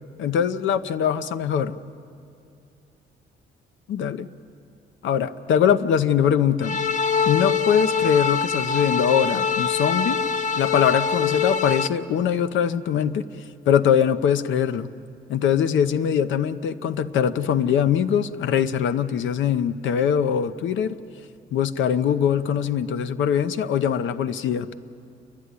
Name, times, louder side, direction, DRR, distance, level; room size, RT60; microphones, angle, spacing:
voice 1, 0.2-1.8 3.9-4.3 5.0-6.8 7.3-10.2 10.6-13.2 13.7-14.9 15.3-21.0 21.5-24.7, left 8 dB, 75° left, 12 dB, 0.8 m, -22 dB
sound 1, 6.6-11.9, left 6 dB, 40° left, 0.7 m, -24 dB
28.5 x 11.5 x 9.6 m, 2.5 s
cardioid pair, 90°, 20 cm